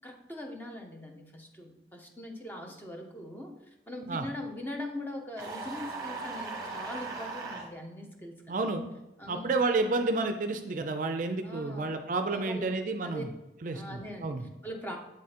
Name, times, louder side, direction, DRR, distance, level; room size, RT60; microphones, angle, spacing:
voice 1, 0.0-3.5 3.9-8.6 9.2-9.6 11.4-12.0 12.3-12.7 13.0-13.2 13.6-15.0, left 1 dB, 10° left, 1 dB, 0.7 m, -41 dB
sound 1, 5.4-7.7, right 3 dB, 25° right, 1.0 m, -38 dB
voice 2, 8.5-8.9 9.3-13.3 13.6-14.5, right 3 dB, 45° right, 7 dB, 0.4 m, -30 dB
7.5 x 3.7 x 4.2 m, 0.95 s
head